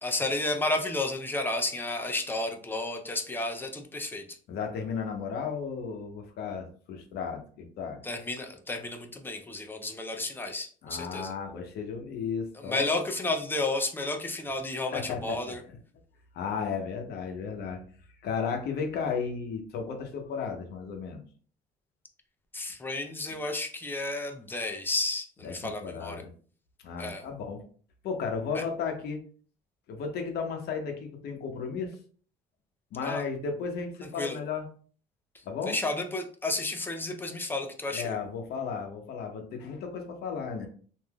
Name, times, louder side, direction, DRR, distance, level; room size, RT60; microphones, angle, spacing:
voice 1, 0.0-4.2 8.0-11.3 12.6-15.6 22.5-26.2 27.0-27.2 28.5-28.6 33.0-33.2 34.2-34.4 35.7-38.2, left 2 dB, 10° left, 3 dB, 0.5 m, -32 dB
voice 2, 4.5-8.0 10.8-12.9 14.9-15.8 16.3-17.8 18.2-21.2 25.4-26.3 26.8-27.6 28.0-29.2 29.9-31.9 32.9-34.7 35.5-35.8 37.9-40.7, left 6 dB, 75° left, 4 dB, 0.8 m, -34 dB
3.3 x 2.6 x 2.2 m, 0.43 s
cardioid pair, 110°, 17 cm